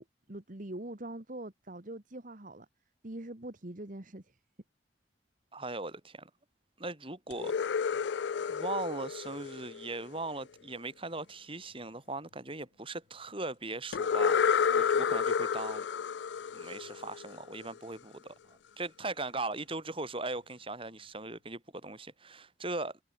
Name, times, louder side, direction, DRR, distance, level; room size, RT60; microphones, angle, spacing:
voice 1, 0.0-2.7 3.0-4.4, right 1 dB, 45° right, 1.6 m, -43 dB
voice 2, 5.5-6.3 6.8-7.8 8.5-15.9 16.5-23.0, right 2 dB, 30° right, 5.4 m, -39 dB
sound 1, 7.3-10.3 13.9-17.6, left 6 dB, 70° left, 0.4 m, -30 dB
head